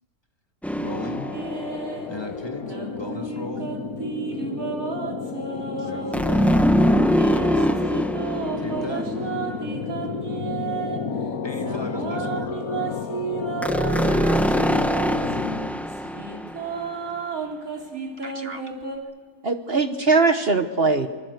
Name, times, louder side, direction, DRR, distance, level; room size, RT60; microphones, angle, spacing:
sound 1, 0.6-2.2 6.1-9.9 13.6-16.9, equal, ahead, 0.6 m, -23 dB
voice 1, 0.8-1.3 2.1-3.7 5.6-6.8 8.6-9.3 11.4-12.5 14.5-14.8, left 1 dB, 15° left, 5 dB, 1.7 m, -36 dB
sound 2, 0.9-15.7, left 5 dB, 70° left, 1.6 m, -32 dB
sound 3, 1.3-2.1 2.7-6.2 6.7-11.0 11.5-15.3 15.9-19.0, right 5 dB, 65° right, 3.8 m, -32 dB
voice 2, 5.8-6.3 7.4-8.0 8.4-8.9 15.7-16.1, left 3 dB, 40° left, 7 dB, 0.9 m, -45 dB
voice 3, 18.2-18.6 19.4-21.1, right 4 dB, 45° right, 9 dB, 1.2 m, -21 dB
24.5 x 24.5 x 8.0 m, 1.4 s
omnidirectional pair, 1.6 m